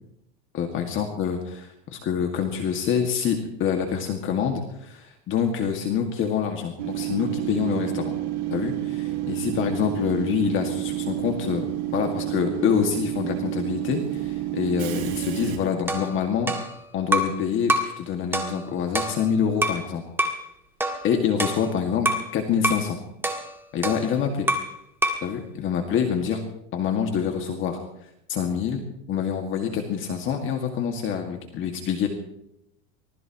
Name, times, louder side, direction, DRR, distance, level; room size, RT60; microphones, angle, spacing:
voice 1, 0.5-8.2 8.5-11.6 11.9-16.5 16.9-20.0 21.0-22.1 22.3-23.0 23.7-24.5 25.2-26.4 26.7-27.8 28.3-28.8 29.1-32.1, left 7 dB, 40° left, 3 dB, 2.0 m, -26 dB
Train / Subway metro underground, 6.8-15.6, right 15 dB, 85° right, 3.8 m, -29 dB
sound 1, 15.9-17.4 17.7-18.0 18.3-19.9 20.2-20.4 20.8-22.3 22.6-22.9 23.2-24.8 25.0-25.3, right 1 dB, 5° right, 1.6 m, -27 dB
24.5 x 19.5 x 3.0 m, 0.78 s
supercardioid pair, 150°, 32 cm